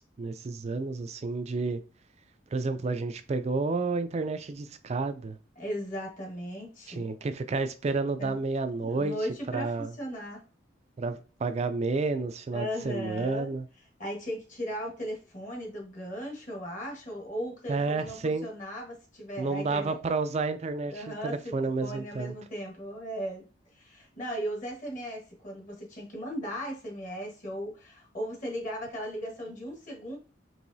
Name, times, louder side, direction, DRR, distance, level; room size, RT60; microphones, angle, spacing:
voice 1, 0.0-1.8 2.5-5.4 6.9-9.2 9.5-9.9 11.0-13.7 17.7-18.5 19.4-22.3, right 3 dB, 35° right, 0.3 m, -30 dB
voice 2, 5.6-7.1 8.2-8.3 8.8-10.4 12.5-13.6 14.0-20.0 20.9-21.5 21.8-23.4 23.7-30.2, equal, 45° left, 1.3 m, -37 dB
4.7 x 3.0 x 2.7 m
head